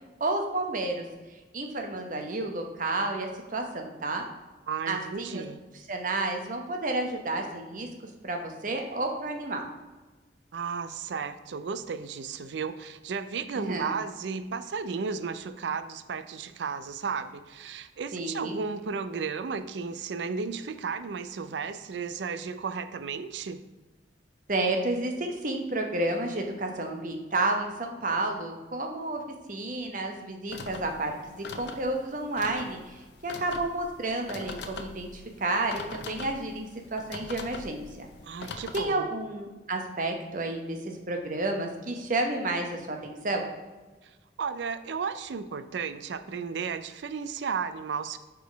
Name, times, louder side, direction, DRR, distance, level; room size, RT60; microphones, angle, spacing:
voice 1, 0.2-1.0 1.5-4.2 4.9-5.4 5.9-7.9 8.2-9.6 13.5-13.9 18.1-18.6 24.5-29.2 29.5-38.1 38.4-40.8 41.1-43.5, right 2 dB, 45° right, 3 dB, 0.9 m, -31 dB
voice 2, 4.7-5.6 10.5-23.6 38.2-39.1 44.4-48.2, right 5 dB, 80° right, 12 dB, 0.4 m, -34 dB
sound 1, 30.5-38.9, left 3 dB, 70° left, 0.6 m, -42 dB
5.0 x 4.7 x 5.1 m, 1.2 s
head